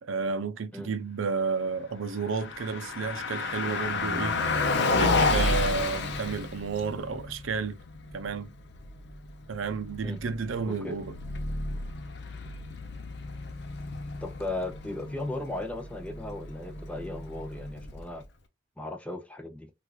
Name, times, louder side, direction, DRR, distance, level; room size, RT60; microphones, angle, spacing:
voice 1, 0.0-4.4 5.0-7.8 8.1-8.5 9.5-11.2, right 5 dB, 75° right, 0.5 m, -31 dB
Car passing by, 2.1-18.2, left 3 dB, 55° left, 0.7 m, -32 dB
voice 2, 14.2-18.2 18.8-19.7, left 2 dB, 5° left, 0.5 m, -36 dB
4.5 x 2.4 x 2.3 m
head